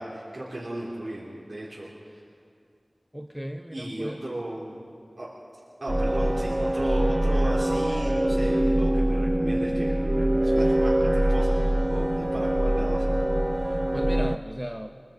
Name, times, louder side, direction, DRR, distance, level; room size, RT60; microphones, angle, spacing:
voice 1, 0.0-2.2 3.7-4.8 5.2-5.3 5.8-13.0, right 1 dB, 65° right, -7 dB, 3.9 m, -36 dB
voice 2, 3.1-4.2 13.6-15.0, equal, 5° right, 5 dB, 0.9 m, -36 dB
sound 1, 5.9-14.4, right 1 dB, 25° right, 0.5 m, -23 dB
24.0 x 23.5 x 5.4 m, 2.3 s
wide cardioid pair, 50°, 0 cm